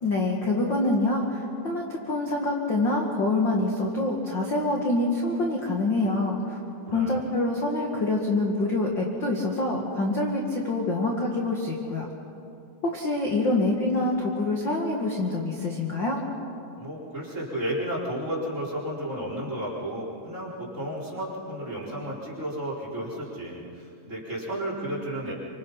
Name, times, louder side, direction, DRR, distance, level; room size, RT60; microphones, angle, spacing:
voice 1, 0.0-6.6 6.9-12.1 12.8-16.2, left 2 dB, 40° left, -1 dB, 1.7 m, -26 dB
voice 2, 6.8-7.2 16.8-25.3, right 1 dB, 15° right, -4 dB, 4.5 m, -33 dB
27.5 x 26.0 x 5.7 m, 2.6 s
omnidirectional pair, 5.1 m